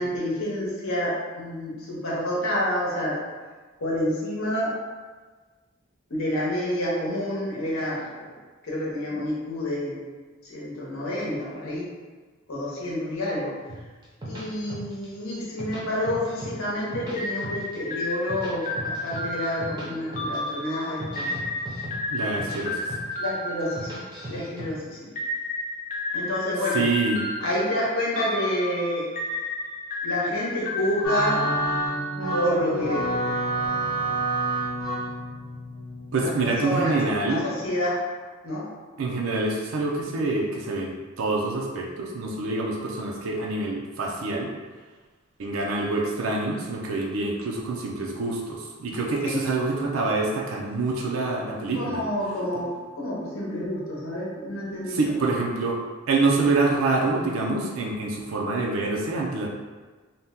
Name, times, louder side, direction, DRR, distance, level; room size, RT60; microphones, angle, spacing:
voice 1, 0.0-3.2 3.8-4.7 6.1-8.3 8.6-10.0 10.4-11.9 12.5-13.5 14.2-21.3 23.2-23.9 24.3-25.1 26.1-26.9 27.4-29.1 30.0-31.4 32.3-33.1 36.2-37.0 37.3-38.0 38.4-38.6 49.2-49.4 51.7-52.7 52.9-55.1, left 1 dB, 70° left, -6 dB, 0.8 m, -28 dB
sound 1, 13.7-15.1 15.4-16.5 16.8-17.8 18.1-19.9 20.1-20.5 20.8-22.6 22.9-23.3 23.6-24.7, right 1 dB, 20° right, 0.5 m, -37 dB
sound 2, 17.2-24.6 25.2-32.4, left 2 dB, 35° left, 0.3 m, -32 dB
voice 2, 22.1-22.8 26.7-27.2 36.1-37.4 39.0-44.5 45.4-52.0 54.9-55.8 56.1-59.5, right 3 dB, 70° right, -2 dB, 0.4 m, -26 dB
sound 3, 31.0-36.8, right 2 dB, 20° left, 0.8 m, -28 dB
2.7 x 2.1 x 3.5 m, 1.4 s
head